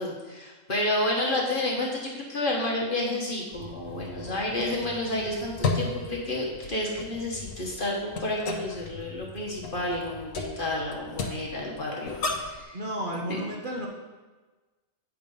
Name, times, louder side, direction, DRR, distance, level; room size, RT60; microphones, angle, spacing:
voice 1, 0.0-12.8, left 1 dB, 40° left, -2 dB, 1.3 m, -30 dB
sound 1, 3.5-12.6, left 3 dB, 70° left, 1.2 m, -35 dB
voice 2, 12.7-13.9, right 1 dB, 40° right, -2 dB, 1.0 m, -32 dB
8.5 x 4.7 x 5.3 m, 1.3 s
omnidirectional pair, 1.5 m